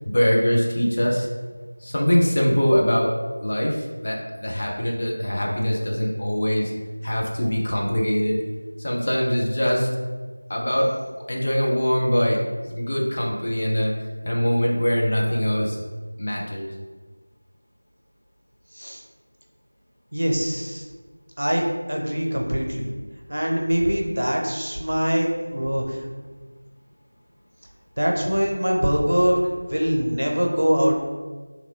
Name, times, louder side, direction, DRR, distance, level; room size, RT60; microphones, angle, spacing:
voice 1, 0.1-1.3 1.8-3.1 3.4-6.7 7.0-8.4 8.8-9.9 10.5-10.9 11.3-12.4 12.7-13.9 14.2-15.8 16.2-16.7, equal, 25° left, -3 dB, 0.3 m, -22 dB
voice 2, 20.1-20.8 21.4-21.6 21.9-22.9 23.3-26.0 28.0-29.4 29.7-31.0, equal, 55° right, 0 dB, 0.6 m, -23 dB
3.1 x 2.9 x 2.7 m, 1.3 s
figure-of-eight pair, 175°, 0 cm